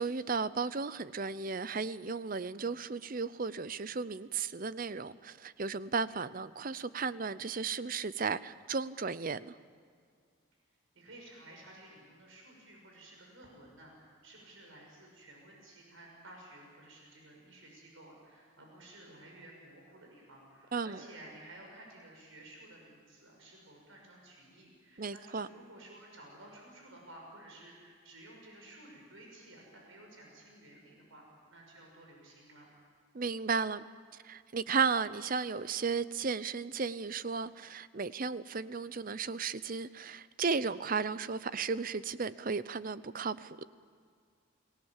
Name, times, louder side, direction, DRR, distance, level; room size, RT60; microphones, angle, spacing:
voice 1, 0.0-9.5 20.7-21.0 25.0-25.5 33.1-33.8 34.2-43.6, right 5 dB, 40° right, 16 dB, 0.6 m, -34 dB
voice 2, 10.9-32.7, right 1 dB, 70° right, 0 dB, 6.1 m, -54 dB
29.0 x 19.0 x 7.4 m, 2.2 s
head